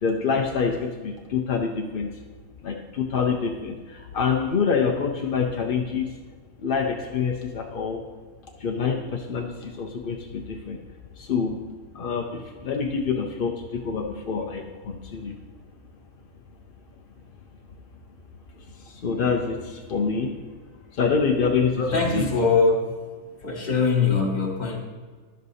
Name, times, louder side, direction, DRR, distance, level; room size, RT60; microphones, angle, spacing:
voice 1, 0.0-2.1 2.6-6.1 6.6-8.0 8.6-10.8 11.2-11.6 11.9-15.4 18.8-20.3 20.9-21.8 22.1-22.3, left 5 dB, 55° left, 1 dB, 0.6 m, -26 dB
voice 2, 21.8-22.9 23.4-24.8, left 4 dB, 30° left, 1 dB, 1.5 m, -22 dB
10.5 x 6.6 x 4.1 m, 1.5 s
omnidirectional pair, 1.7 m